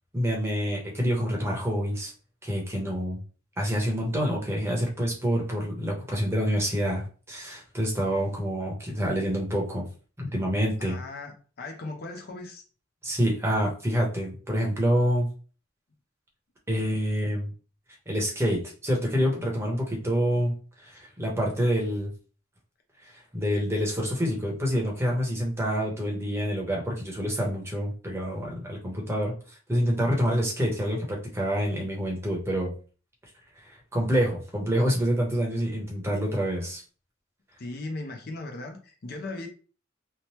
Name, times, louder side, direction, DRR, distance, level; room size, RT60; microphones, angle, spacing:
voice 1, 0.1-2.1 2.4-3.2 3.6-9.9 10.2-11.0 13.0-15.3 16.7-17.5 18.1-22.1 23.0-29.3 29.7-32.7 33.6-36.8, equal, 15° right, -2 dB, 0.8 m, -27 dB
voice 2, 10.8-12.6 16.9-17.0 37.6-39.5, left 2 dB, 50° left, 4 dB, 0.5 m, -38 dB
2.9 x 2.1 x 3.1 m, 0.37 s
head